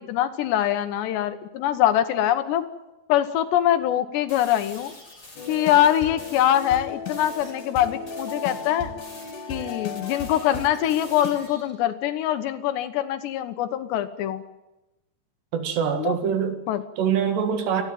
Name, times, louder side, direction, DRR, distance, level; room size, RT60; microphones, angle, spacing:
voice 1, 0.0-2.7 3.1-4.9 5.5-8.9 9.5-14.4 16.0-16.2 16.7-16.8, left 11 dB, 80° left, 10 dB, 3.4 m, -23 dB
sound 1, 4.3-6.8 7.1-7.6 8.1-11.8, left 2 dB, 25° left, 7.2 m, -47 dB
sound 2, 5.4-11.3, left 4 dB, 60° left, 4.6 m, -36 dB
voice 2, 15.5-16.7 17.0-17.8, right 7 dB, 75° right, 6 dB, 4.3 m, -24 dB
30.0 x 13.5 x 9.4 m, 1.0 s
omnidirectional pair, 4.9 m